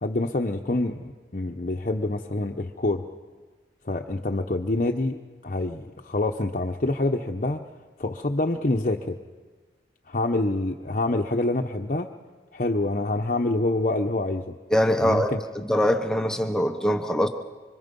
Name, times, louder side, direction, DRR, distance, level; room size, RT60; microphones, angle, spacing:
voice 1, 0.0-3.0 3.9-5.2 5.4-7.7 8.0-9.2 10.1-12.1 12.5-14.5 15.0-15.4, left 2 dB, 45° left, 2 dB, 0.9 m, -26 dB
voice 2, 14.7-15.3 15.5-17.3, equal, 5° left, 5 dB, 1.0 m, -22 dB
26.0 x 25.5 x 5.4 m, 1.3 s
head